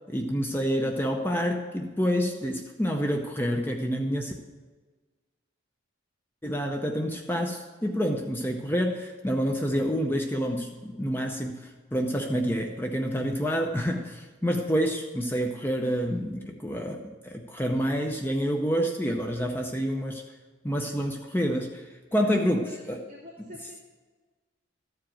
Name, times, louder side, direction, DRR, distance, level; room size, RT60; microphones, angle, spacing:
voice 1, 0.1-4.3 6.4-20.2 20.6-23.0, equal, 10° left, 2 dB, 0.6 m, -28 dB
voice 2, 22.2-22.8 23.1-23.8, equal, 35° right, -10 dB, 2.7 m, -47 dB
13.5 x 4.8 x 8.9 m, 1.3 s
head